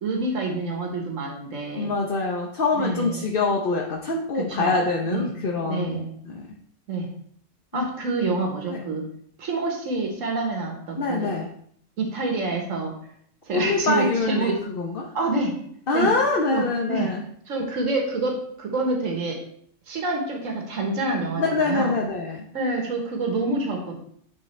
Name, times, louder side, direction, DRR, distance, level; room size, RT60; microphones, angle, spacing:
voice 1, 0.0-1.9 2.7-3.4 4.3-4.7 5.1-5.3 5.6-6.1 6.9-7.1 7.7-9.0 9.4-11.3 12.0-12.9 13.5-14.6 15.1-15.5 15.9-16.1 16.5-17.1 17.5-19.4 19.9-21.9 22.5-23.9, right 3 dB, 85° right, 1 dB, 1.6 m, -27 dB
voice 2, 1.8-6.0 6.2-6.4 7.7-7.9 8.7-8.8 11.0-11.5 13.5-15.1 15.9-17.2 21.4-22.4, left 3 dB, 50° left, 0 dB, 1.0 m, -24 dB
10.0 x 3.9 x 3.2 m, 0.64 s
omnidirectional pair, 1.3 m